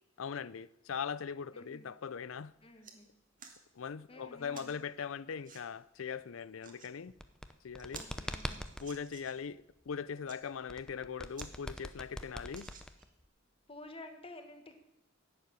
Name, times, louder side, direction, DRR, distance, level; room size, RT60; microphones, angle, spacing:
voice 1, 0.2-2.5 3.8-7.1 7.6-8.0 8.8-12.7, left 6 dB, 75° left, 0.5 m, -40 dB
voice 2, 1.5-1.9 2.6-3.1 4.1-4.7 7.9-8.6 13.7-14.8, left 2 dB, 30° left, 1.5 m, -51 dB
sound 1, 2.7-3.0 3.4-3.6 4.5-4.8 5.4-5.6 6.4-6.9 7.4-7.5 7.8-9.5 10.1-10.4 10.9-11.0 11.3-11.5 11.9-12.0 12.5-13.2 13.9-14.0, right 6 dB, 40° right, 1.6 m, -53 dB
sound 2, 7.1-8.9 10.7-13.3, equal, 5° left, 0.6 m, -42 dB
11.5 x 7.7 x 9.5 m
head